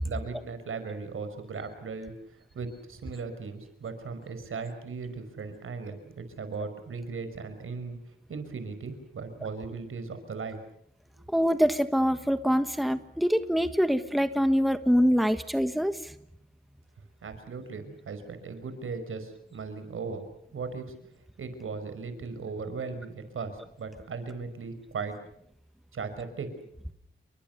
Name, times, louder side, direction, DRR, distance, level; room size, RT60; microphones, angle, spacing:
voice 1, 0.0-8.0 8.3-10.6 17.2-20.3 20.5-20.9 21.4-25.1 25.9-26.5, right 4 dB, 85° right, 10 dB, 5.5 m, -37 dB
voice 2, 11.3-16.0, equal, ahead, 10 dB, 1.5 m, -24 dB
29.5 x 23.5 x 6.9 m, 0.70 s
wide cardioid pair, 95°, 21 cm